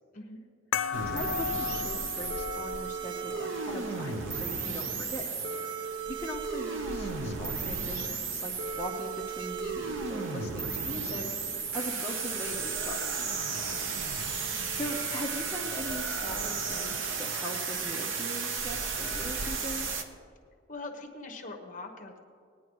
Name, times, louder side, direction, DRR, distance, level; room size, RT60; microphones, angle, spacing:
sound 1, 0.7-5.8, left 7 dB, 75° left, 0.5 m, -37 dB
sound 2, 0.9-19.9, equal, 45° right, 0.6 m, -48 dB
sound 3, 0.9-20.0, right 5 dB, 75° right, 0.8 m, -34 dB
voice 1, 1.1-5.3 6.1-13.3 14.7-19.9, left 1 dB, 10° left, -5 dB, 0.8 m, -40 dB
voice 2, 20.7-22.2, left 2 dB, 40° left, 3 dB, 1.1 m, -42 dB
18.5 x 9.7 x 3.1 m, 2.3 s
head